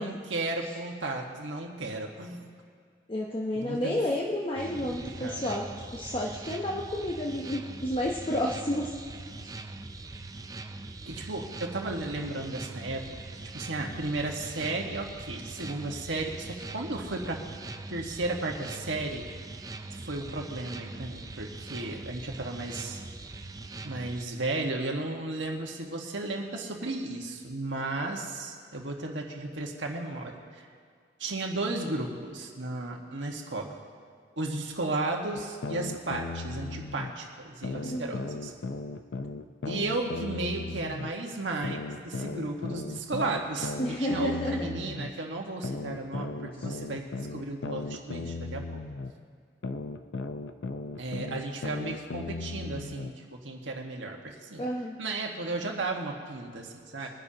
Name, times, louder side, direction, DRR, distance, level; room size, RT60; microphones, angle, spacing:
voice 1, 0.0-2.4 3.5-4.0 4.8-5.5 11.0-13.0 13.5-17.4 17.9-19.2 20.0-23.0 23.8-30.7 31.2-33.7 34.4-38.5 39.7-48.8 51.0-53.1 53.4-54.6 55.0-57.1, right 2 dB, 90° right, 1 dB, 1.6 m, -34 dB
voice 2, 3.1-5.7 5.9-8.9 27.8-27.9 37.8-38.4 43.8-44.7 46.6-46.7 54.6-55.0, left 1 dB, 30° left, -2 dB, 0.8 m, -31 dB
sound 1, 4.6-24.2, right 2 dB, 20° right, 0.4 m, -42 dB
sound 2, 35.3-37.1 37.6-41.1 41.6-45.1 45.6-49.1 49.6-53.1, left 3 dB, 75° left, 0.6 m, -36 dB
22.5 x 10.5 x 2.9 m, 2.1 s
head